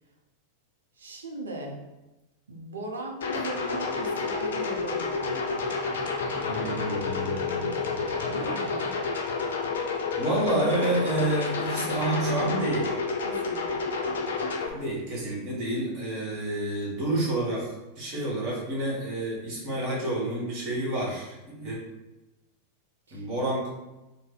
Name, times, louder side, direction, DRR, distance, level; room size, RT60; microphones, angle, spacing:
voice 1, 1.0-1.8 2.5-5.4 8.3-8.9 13.2-13.8 23.1-23.3, right 2 dB, 70° right, 1 dB, 0.5 m, -38 dB
sound 1, 3.2-14.7, left 4 dB, 60° left, 0.4 m, -30 dB
voice 2, 6.4-7.9 10.2-12.9 14.7-21.8 23.1-23.7, right 1 dB, 40° right, -4 dB, 1.2 m, -29 dB
2.5 x 2.0 x 3.9 m, 1.0 s
figure-of-eight pair, 90°, 0 cm